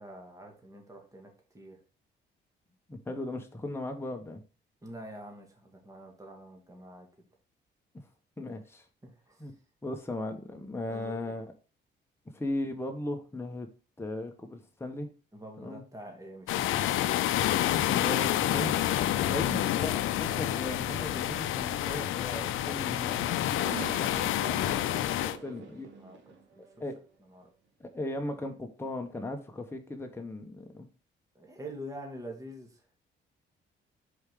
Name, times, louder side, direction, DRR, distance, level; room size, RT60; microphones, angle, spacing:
voice 1, 0.0-1.8 4.8-7.3 9.0-9.4 10.9-11.3 15.3-16.8 19.3-19.5 24.4-25.5 25.9-26.7 27.3-27.5 31.4-32.8, right 1 dB, 15° right, 1 dB, 2.0 m, -46 dB
voice 2, 2.9-4.4 7.9-8.1 8.4-8.9 9.4-9.5 9.8-11.5 12.3-13.7 14.0-15.1 15.6-15.8 17.9-18.7 19.2-23.2 25.4-25.9 26.8-27.0 27.8-30.9, left 2 dB, 10° left, 4 dB, 1.2 m, -37 dB
sound 1, 16.5-25.4, left 13 dB, 85° left, 0.5 m, -28 dB
Race car auto racing / Accelerating revving vroom, 22.6-27.2 27.9-28.0 29.1-29.3, right 6 dB, 65° right, 1.9 m, -46 dB
5.2 x 4.9 x 3.7 m, 0.35 s
cardioid pair, 90°, 20 cm